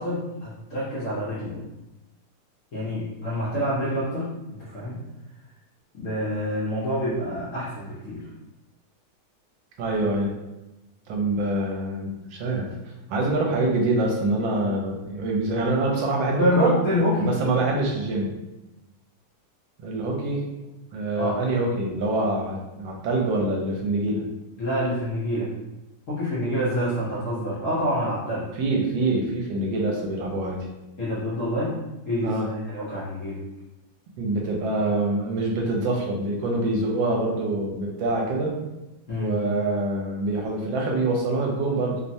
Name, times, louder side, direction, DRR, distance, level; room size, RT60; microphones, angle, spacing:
voice 1, 0.0-1.6 2.7-4.3 4.6-5.0 5.9-8.2 16.4-17.3 21.2-21.4 24.6-25.5 26.1-28.5 31.0-31.7 32.1-33.4 39.1-39.3, equal, 60° left, -9 dB, 0.8 m, -27 dB
voice 2, 9.8-10.3 11.1-12.7 13.1-16.8 17.2-18.3 19.8-20.4 20.9-24.2 28.5-30.7 32.2-32.5 34.2-38.5 39.1-42.0, right 2 dB, 80° right, -1 dB, 1.3 m, -25 dB
3.2 x 2.0 x 2.6 m, 0.99 s
omnidirectional pair, 2.1 m